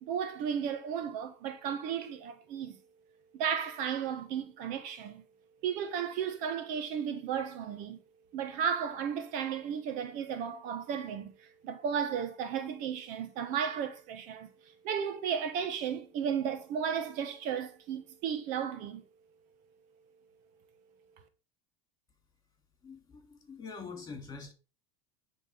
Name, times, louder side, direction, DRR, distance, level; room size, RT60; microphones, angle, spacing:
voice 1, 0.0-2.8 3.3-5.2 5.6-8.0 8.3-14.5 14.8-19.0, right 8 dB, 60° right, 1.3 m, -34 dB
voice 2, 22.8-24.5, left 5 dB, 25° left, 3.2 m, -44 dB
9.7 x 3.9 x 5.2 m
supercardioid pair, 105°, 15 cm